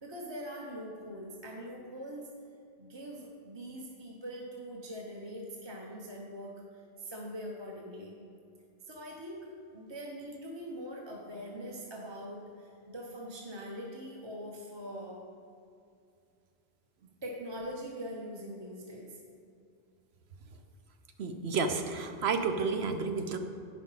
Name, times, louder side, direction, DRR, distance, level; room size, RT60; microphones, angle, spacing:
voice 1, 0.0-2.3 2.8-6.5 7.0-8.1 8.8-15.3 17.2-19.2, equal, 25° right, -1 dB, 0.9 m, -42 dB
voice 2, 21.2-23.4, right 4 dB, 70° right, 6 dB, 1.0 m, -31 dB
9.7 x 5.4 x 5.7 m, 2.5 s
omnidirectional pair, 1.1 m